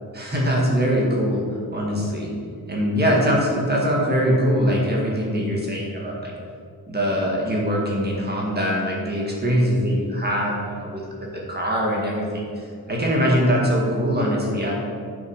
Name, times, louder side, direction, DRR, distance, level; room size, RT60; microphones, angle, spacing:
voice 1, 0.1-1.4 1.7-2.3 2.7-6.3 6.9-14.7, equal, 25° right, -3 dB, 1.8 m, -22 dB
9.1 x 6.0 x 6.5 m, 2.3 s
wide cardioid pair, 165°, 39 cm